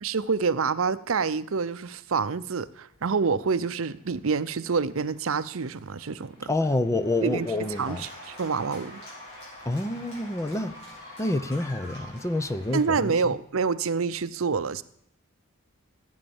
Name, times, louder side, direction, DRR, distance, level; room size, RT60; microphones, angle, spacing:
voice 1, 0.0-6.5 7.2-7.5 7.8-9.0 12.7-14.8, right 5 dB, 70° right, 0.6 m, -27 dB
Cheering / Applause, 3.3-13.0, left 1 dB, 55° left, 7.4 m, -47 dB
voice 2, 6.5-8.1 9.6-10.8 11.2-13.3, left 2 dB, 15° left, 0.7 m, -28 dB
15.0 x 9.4 x 7.1 m
head